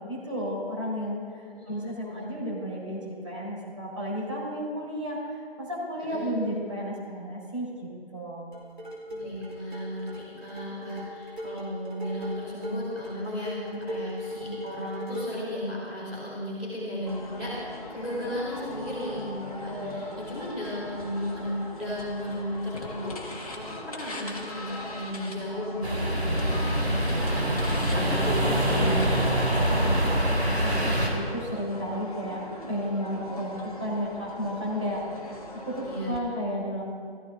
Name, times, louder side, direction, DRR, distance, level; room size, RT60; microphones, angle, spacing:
voice 1, 0.0-7.7 8.1-8.5 13.6-13.8 19.6-20.2 29.8-32.4 32.7-36.8, equal, 30° right, -6 dB, 4.4 m, -33 dB
voice 2, 1.5-2.3 6.1-6.3 9.1-29.4 35.8-36.2, equal, ahead, -18 dB, 1.8 m, -35 dB
sound 1, 8.5-15.5, equal, 50° right, 4.6 m, -39 dB
sound 2, 17.1-36.2, left 1 dB, 35° left, 1.8 m, -41 dB
sound 3, 25.8-31.1, right 1 dB, 85° right, 3.8 m, -24 dB
16.0 x 15.0 x 3.9 m, 2.2 s
figure-of-eight pair, 170°, 32 cm